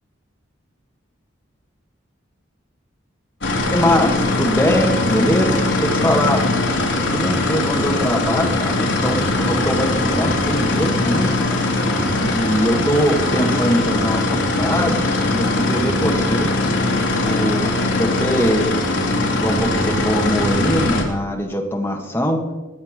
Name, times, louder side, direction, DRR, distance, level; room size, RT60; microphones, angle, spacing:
sound 1, 3.4-21.0, left 2 dB, 65° left, 2.4 m, -20 dB
voice 1, 3.7-6.4 7.1-11.5 12.2-15.0 15.3-16.5 17.2-18.7 19.4-22.4, equal, 10° left, 2 dB, 1.7 m, -22 dB
18.5 x 10.0 x 5.1 m, 1.2 s
head